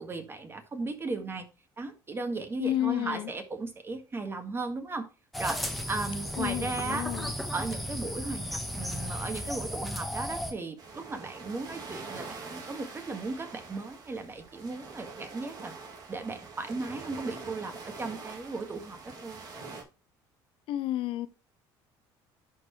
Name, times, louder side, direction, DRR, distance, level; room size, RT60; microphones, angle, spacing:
voice 1, 0.0-1.5 1.8-5.1 5.4-5.6 5.9-7.1 7.5-15.8 16.1-19.4, right 3 dB, 25° right, 1.7 m, -36 dB
voice 2, 2.6-3.3 6.4-7.3 20.7-21.3, left 13 dB, 65° left, 0.6 m, -31 dB
sound 1, 5.3-10.5, equal, ahead, 1.3 m, -35 dB
sound 2, 10.8-19.8, right 4 dB, 45° right, 2.3 m, -44 dB
10.5 x 4.5 x 3.1 m
supercardioid pair, 95°, 10 cm